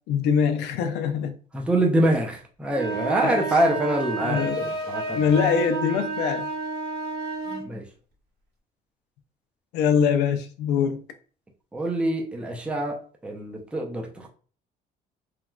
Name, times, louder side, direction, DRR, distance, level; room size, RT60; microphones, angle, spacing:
voice 1, 0.1-1.3 3.2-3.4 4.2-4.7 5.1-6.5 9.7-11.0, left 7 dB, 85° left, 0.5 m, -23 dB
voice 2, 1.5-5.2 7.5-7.9 11.7-14.3, right 1 dB, 5° right, 0.5 m, -25 dB
sound 1, 2.7-7.7, right 3 dB, 75° right, 1.3 m, -30 dB
3.1 x 2.3 x 2.2 m
cardioid pair, 110°, 17 cm